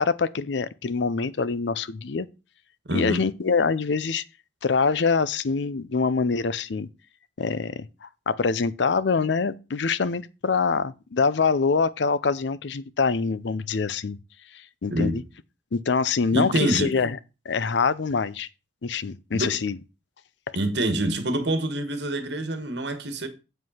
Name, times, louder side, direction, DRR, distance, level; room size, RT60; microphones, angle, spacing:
voice 1, 0.0-2.3 2.9-4.2 4.6-6.9 7.4-14.2 14.5-15.2 15.7-17.2 17.5-18.5 18.8-19.8, left 5 dB, 70° left, 0.5 m, -25 dB
voice 2, 2.9-3.2 14.9-15.3 16.3-17.0 19.3-19.6 20.5-23.3, right 1 dB, 65° right, 1.5 m, -26 dB
7.7 x 5.3 x 5.6 m
head